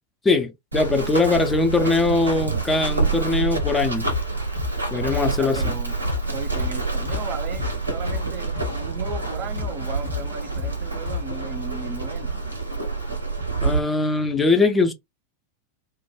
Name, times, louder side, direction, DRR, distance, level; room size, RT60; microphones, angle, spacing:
voice 1, 0.2-4.0 4.9-5.6 13.6-14.9, left 3 dB, 15° left, 0.5 m, -21 dB
Run, 0.7-13.8, right 4 dB, 80° right, 0.6 m, -27 dB
sound 1, 3.6-3.7 4.1-7.7 8.1-11.5, left 11 dB, 60° left, 0.6 m, -32 dB
voice 2, 4.9-6.0 6.3-12.4, right 4 dB, 40° right, 0.5 m, -36 dB
2.2 x 2.0 x 3.1 m
figure-of-eight pair, 90°, 0 cm